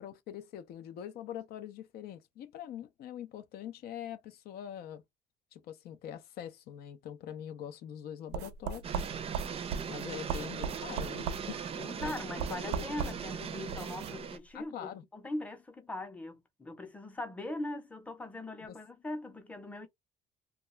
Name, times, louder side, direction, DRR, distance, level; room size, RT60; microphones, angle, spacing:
voice 1, 0.0-5.0 5.5-9.0 9.9-11.6 12.0-12.1 12.5-13.0 14.5-15.0 18.6-18.8, left 10 dB, 65° left, 0.5 m, -43 dB
sound 1, 8.3-14.2, right 6 dB, 90° right, 0.5 m, -38 dB
sound 2, 8.8-14.4, right 7 dB, 35° right, 0.4 m, -39 dB
voice 2, 11.7-19.9, left 2 dB, 10° left, 0.7 m, -41 dB
2.3 x 2.2 x 3.0 m
cardioid pair, 110°, 17 cm